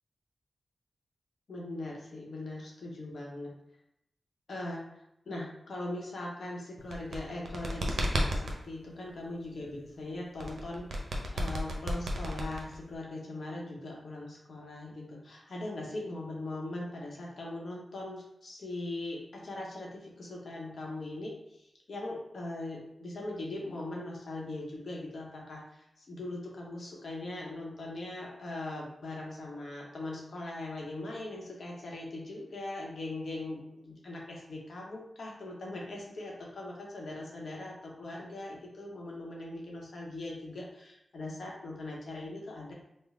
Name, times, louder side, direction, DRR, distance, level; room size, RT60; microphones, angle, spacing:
voice 1, 1.5-3.5 4.5-42.7, left 2 dB, 70° left, -2 dB, 0.9 m, -40 dB
sound 1, 6.8-8.6 10.4-13.0, equal, 75° right, 0.5 m, -32 dB
3.2 x 2.1 x 3.6 m, 0.81 s
cardioid pair, 45°, 0 cm